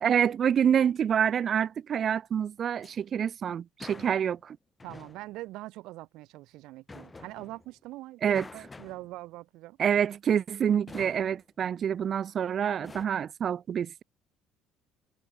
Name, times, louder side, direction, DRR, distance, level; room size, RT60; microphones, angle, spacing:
voice 1, 0.0-4.6 8.2-8.4 9.8-14.0, right 8 dB, 50° right, 0.5 m, -27 dB
sound 1, 2.6-3.0 3.8-4.4 4.8-5.4 6.9-7.8 8.3-9.2 10.9-11.4 12.8-13.1, left 3 dB, 25° left, 0.5 m, -47 dB
voice 2, 4.8-9.8, right 18 dB, 70° right, 1.1 m, -43 dB
hypercardioid pair, 60°, 0 cm